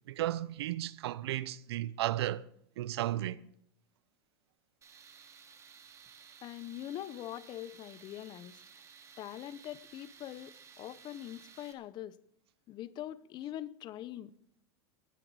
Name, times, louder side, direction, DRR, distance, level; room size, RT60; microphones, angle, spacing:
voice 1, 0.1-2.4 2.8-3.4, right 14 dB, 80° right, 0.6 m, -34 dB
Tools, 4.8-11.7, right 6 dB, 20° right, 1.7 m, -56 dB
voice 2, 6.4-8.6 9.2-12.2 12.7-14.3, left 12 dB, 35° left, 0.6 m, -43 dB
20.5 x 7.8 x 4.7 m
supercardioid pair, 130°, 13 cm